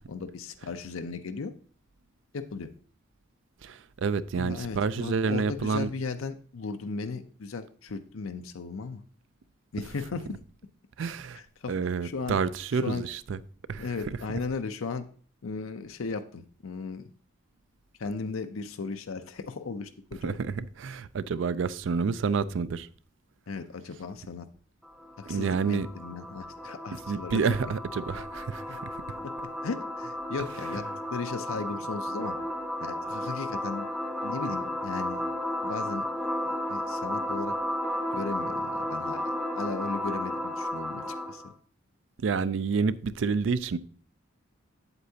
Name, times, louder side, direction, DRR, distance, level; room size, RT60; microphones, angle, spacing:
voice 1, 0.1-1.5 2.3-2.7 4.4-9.0 9.7-10.3 11.0-11.7 12.0-12.4 12.8-13.0 13.8-15.1 15.4-17.1 18.0-20.4 23.5-24.5 25.2-27.6 28.7-28.8 29.2-30.8 31.1-32.4 32.8-33.9 34.2-35.2 35.6-36.0 36.4-37.5 38.1-41.5, left 4 dB, 90° left, 0.6 m, -36 dB
voice 2, 3.6-5.9 11.0-11.4 11.7-13.4 13.7-14.2 20.2-22.9 25.3-25.9 27.1-29.0 42.2-43.8, right 5 dB, 65° right, 0.4 m, -29 dB
sound 1, 24.8-41.5, left 1 dB, ahead, 0.6 m, -33 dB
8.0 x 7.8 x 2.8 m
head